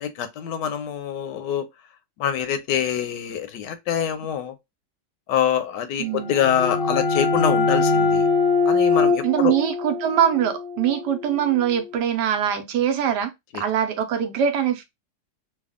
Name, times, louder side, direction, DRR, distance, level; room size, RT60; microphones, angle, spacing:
voice 1, 0.0-1.7 2.2-4.5 5.3-8.2 8.7-9.5 13.5-13.6, left 9 dB, 80° left, 1.2 m, -25 dB
voice 2, 6.0-6.3 9.2-14.8, right 9 dB, 75° right, 1.3 m, -23 dB
sound 1, 6.1-11.6, left 4 dB, 55° left, 0.6 m, -23 dB
3.3 x 2.3 x 3.5 m
omnidirectional pair, 1.9 m